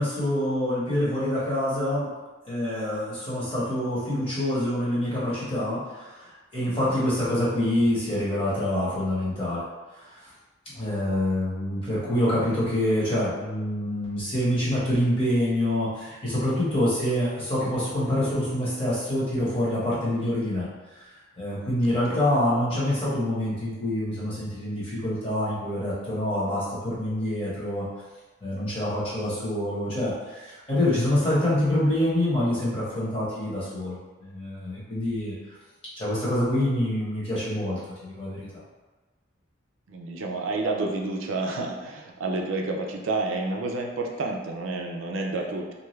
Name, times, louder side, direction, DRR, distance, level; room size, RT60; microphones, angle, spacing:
voice 1, 0.0-2.1 2.5-9.6 10.0-10.3 10.7-20.7 20.9-21.1 21.4-27.9 28.4-35.3 36.0-38.6, left 1 dB, 25° left, -9 dB, 1.0 m, -26 dB
voice 2, 21.8-22.3 39.9-45.7, right 2 dB, 80° right, 1 dB, 0.4 m, -30 dB
2.6 x 2.3 x 3.1 m, 1.2 s
head